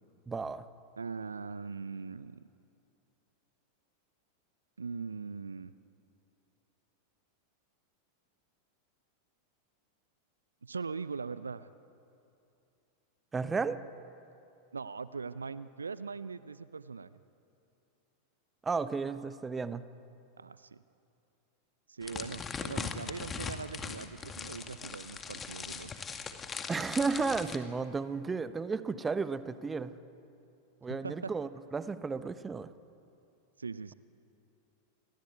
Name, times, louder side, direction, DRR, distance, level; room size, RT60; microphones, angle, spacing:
voice 1, 0.3-0.7 13.3-13.8 18.6-19.8 26.7-29.9 30.8-32.7, right 4 dB, 15° right, 13 dB, 1.1 m, -33 dB
voice 2, 1.0-2.4 4.8-5.7 10.6-11.7 14.7-17.2 20.4-20.8 21.9-25.9 30.9-31.3 33.6-33.9, right 5 dB, 75° right, 16 dB, 0.7 m, -41 dB
sound 1, 22.0-27.6, left 5 dB, 20° left, 2.0 m, -40 dB
29.5 x 22.0 x 8.5 m, 2.7 s
figure-of-eight pair, 90°, 0 cm